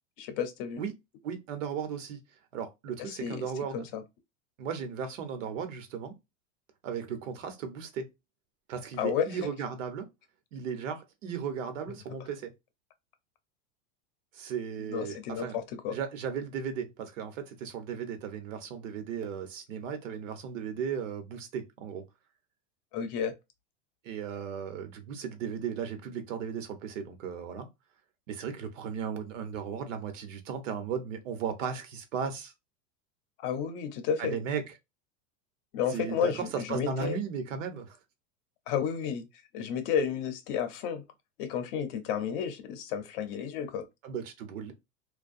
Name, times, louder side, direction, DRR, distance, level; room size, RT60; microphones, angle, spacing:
voice 1, 0.2-0.8 3.0-3.4 3.7-4.0 9.0-9.3 14.9-16.0 22.9-23.3 33.4-34.4 35.7-37.2 38.7-39.2 39.5-41.0 41.4-43.8, left 7 dB, 50° left, 0.6 m, -31 dB
voice 2, 1.2-2.2 2.5-3.9 4.6-6.1 6.8-8.1 8.7-10.1 10.5-12.5 14.3-15.6 15.9-22.0 24.0-27.7 28.3-32.5 34.2-34.7 35.9-38.0 44.0-44.7, right 7 dB, 85° right, 0.9 m, -36 dB
2.6 x 2.2 x 2.5 m
supercardioid pair, 160°, 37 cm